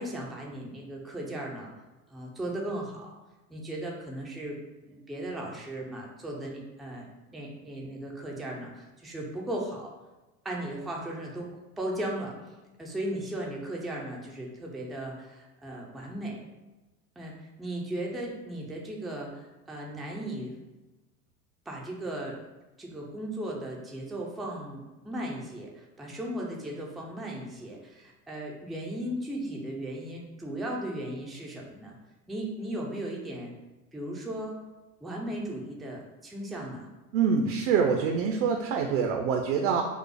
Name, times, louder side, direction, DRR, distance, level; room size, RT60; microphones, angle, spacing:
voice 1, 0.0-1.7 2.1-3.1 3.5-4.6 4.8-9.9 10.4-12.3 12.8-16.4 17.2-20.6 21.7-22.4 22.8-32.0 32.3-33.5 33.9-34.6 35.0-36.9, right 1 dB, ahead, -2 dB, 0.3 m, -36 dB
voice 2, 37.1-39.8, right 6 dB, 55° right, 4 dB, 0.6 m, -25 dB
5.2 x 2.0 x 4.7 m, 1.1 s
hypercardioid pair, 90°, 47 cm